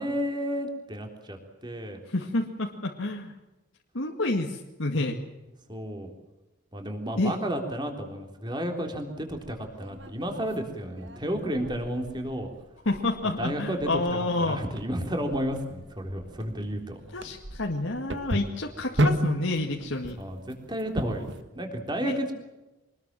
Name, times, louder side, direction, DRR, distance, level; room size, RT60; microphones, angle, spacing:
voice 1, 0.0-2.0 5.7-6.1 6.7-12.5 13.4-17.0 20.2-21.3 21.5-22.3, equal, 20° right, 3 dB, 3.6 m, -32 dB
voice 2, 2.1-3.3 3.9-5.2 7.2-7.3 12.9-14.6 17.1-20.2 22.0-22.1, left 2 dB, 80° left, 1 dB, 2.1 m, -29 dB
sound 1, 9.3-21.4, right 1 dB, 65° right, 1.8 m, -34 dB
24.5 x 20.5 x 7.6 m, 1.1 s
head